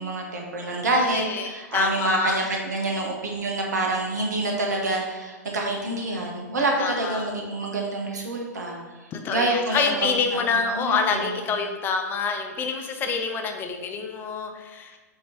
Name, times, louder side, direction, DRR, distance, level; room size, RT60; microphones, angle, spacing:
voice 1, 0.0-9.9 10.3-11.4, right 2 dB, 65° right, 0 dB, 1.3 m, -27 dB
voice 2, 0.6-2.4 6.8-7.3 9.1-15.0, left 5 dB, 20° left, 5 dB, 0.5 m, -27 dB
7.5 x 3.0 x 4.3 m, 1.3 s
figure-of-eight pair, 105°, 10 cm